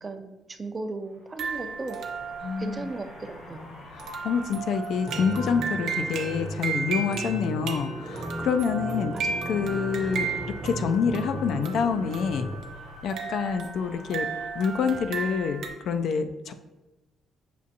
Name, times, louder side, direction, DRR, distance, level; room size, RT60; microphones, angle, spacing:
voice 1, 0.0-2.0 2.6-3.8 9.1-9.6, right 3 dB, 30° right, 7 dB, 0.4 m, -37 dB
sound 1, 1.0-14.7, left 2 dB, 90° left, 1.1 m, -47 dB
sound 2, 1.4-15.7, right 5 dB, 80° right, 0.5 m, -35 dB
voice 2, 2.4-2.9 3.9-9.1 9.5-10.3 10.6-12.5 13.0-14.3 14.6-16.5, left 6 dB, 70° left, 8 dB, 0.3 m, -27 dB
sound 3, 5.1-12.6, right 1 dB, 50° right, 0.8 m, -36 dB
6.6 x 2.5 x 2.7 m, 1.1 s
cardioid pair, 90°, 0 cm